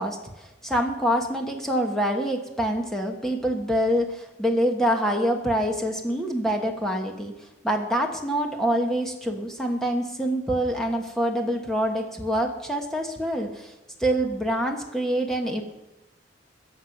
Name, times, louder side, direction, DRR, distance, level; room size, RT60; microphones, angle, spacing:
voice 1, 0.0-7.3 7.6-13.7 14.0-15.6, equal, ahead, 2 dB, 1.3 m, -26 dB
22.0 x 8.0 x 6.0 m, 0.97 s
head